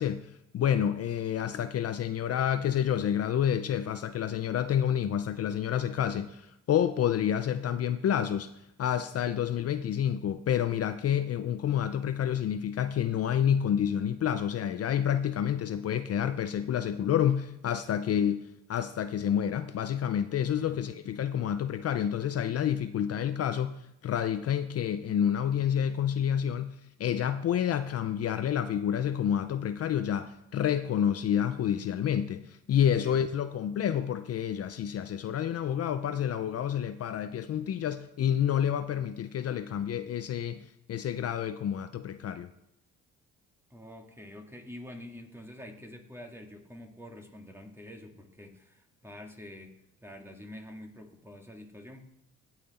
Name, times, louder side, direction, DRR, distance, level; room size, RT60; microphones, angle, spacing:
voice 1, 0.0-8.5 8.8-42.5, left 9 dB, 55° left, 0.6 m, -29 dB
voice 2, 20.6-21.0 33.0-33.2 43.7-49.7 50.0-52.0, left 1 dB, 10° right, 2.0 m, -47 dB
17.0 x 5.8 x 4.2 m
cardioid pair, 90°, 30 cm